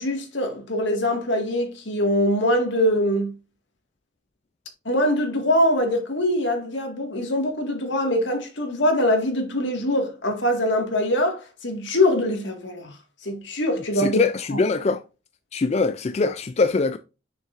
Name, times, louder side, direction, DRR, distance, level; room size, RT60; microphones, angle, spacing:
voice 1, 0.0-3.3 4.9-12.9 13.2-14.2 14.5-14.6, left 1 dB, 75° left, 1.9 m, -23 dB
voice 2, 14.0-15.0 15.5-17.0, left 4 dB, 35° left, 0.3 m, -22 dB
6.7 x 6.4 x 2.5 m
head